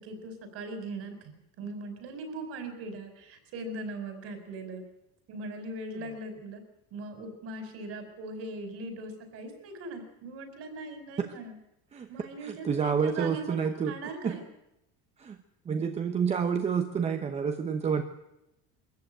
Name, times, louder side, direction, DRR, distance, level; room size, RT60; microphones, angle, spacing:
voice 1, 0.0-4.8 5.3-6.6 6.9-11.6 12.1-13.6 13.9-14.5, right 2 dB, 45° right, 7 dB, 4.7 m, -40 dB
voice 2, 12.4-13.9 14.2-14.4 15.2-15.4 15.7-18.0, right 6 dB, 20° right, 6 dB, 1.0 m, -29 dB
23.0 x 14.5 x 9.1 m, 0.88 s
cardioid pair, 170°, 33 cm